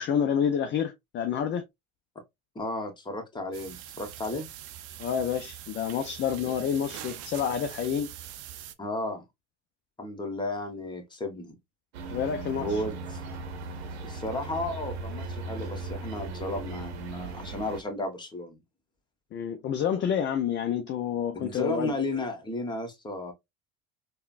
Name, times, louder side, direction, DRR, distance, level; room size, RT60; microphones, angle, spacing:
voice 1, 0.0-1.6 5.0-8.1 12.1-12.8 19.3-21.9, left 8 dB, 35° left, 0.5 m, -28 dB
voice 2, 2.5-4.5 8.8-9.2 10.0-11.5 12.6-13.2 14.0-18.6 21.3-23.3, left 1 dB, 15° left, 1.1 m, -33 dB
sound 1, 3.5-8.7, right 11 dB, 50° right, 0.6 m, -43 dB
sound 2, 11.9-17.8, right 3 dB, 80° right, 0.8 m, -38 dB
3.7 x 2.3 x 2.3 m
hypercardioid pair, 80°, 32 cm